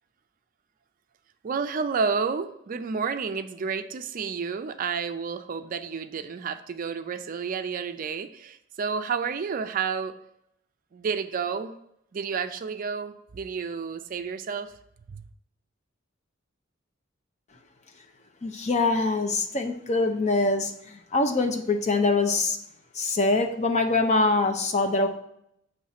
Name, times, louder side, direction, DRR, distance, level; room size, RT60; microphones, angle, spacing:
voice 1, 1.4-10.2 10.9-11.7 12.1-14.7 15.1-15.2, right 5 dB, 45° right, 10 dB, 0.4 m, -30 dB
voice 2, 18.4-22.6 23.0-25.1, left 3 dB, 35° left, 5 dB, 0.7 m, -24 dB
7.4 x 3.1 x 5.7 m, 0.75 s
head